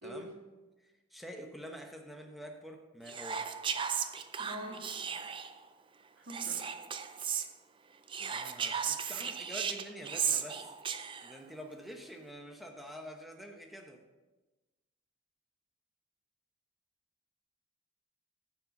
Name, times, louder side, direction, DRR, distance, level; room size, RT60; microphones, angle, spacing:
voice 1, 0.0-0.3 0.8-3.5 8.3-10.7 11.2-14.0, equal, ahead, 3 dB, 0.9 m, -47 dB
Whispering, 3.1-5.6 6.3-7.5 8.1-11.4, right 7 dB, 25° right, 0.4 m, -36 dB
voice 2, 4.4-4.9 6.2-6.6, equal, 60° right, 0 dB, 2.2 m, -44 dB
9.9 x 7.2 x 5.4 m, 1.2 s
head